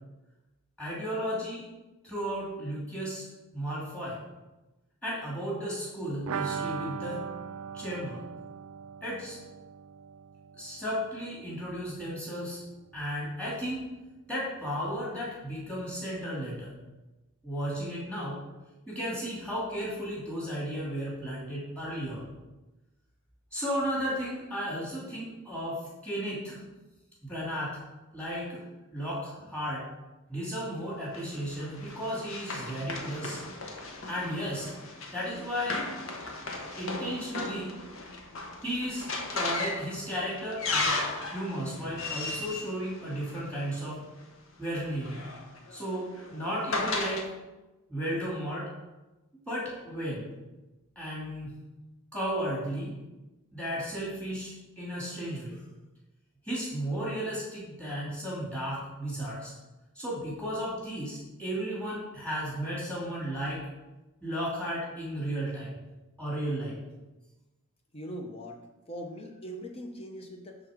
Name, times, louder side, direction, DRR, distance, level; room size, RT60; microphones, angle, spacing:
voice 1, 0.8-1.6 2.0-3.3 3.5-4.2 5.0-7.2 7.7-8.2 9.0-9.4 10.6-12.6 12.9-13.8 14.3-16.7 17.4-18.4 18.9-22.2 23.5-26.6 27.2-27.8 28.1-28.6 28.9-29.8 30.3-33.4 34.1-34.7 35.1-35.8 36.8-37.8 38.6-41.0 41.3-44.0 44.6-45.2 45.7-47.2 47.9-48.7 49.5-50.3 51.0-51.6 52.1-52.9 53.5-55.6 56.4-59.5 59.9-63.7 64.2-65.7 66.2-66.8, equal, 5° left, -7 dB, 2.7 m, -34 dB
sound 1, 6.3-11.9 12.1-12.2 12.5-12.6, right 7 dB, 80° right, 0.4 m, -39 dB
Run, 31.1-43.8 44.8-47.3, left 3 dB, 65° left, 1.2 m, -36 dB
voice 2, 67.9-68.6 68.9-70.6, equal, 25° left, 2 dB, 0.9 m, -40 dB
10.5 x 3.8 x 5.1 m, 1.1 s
head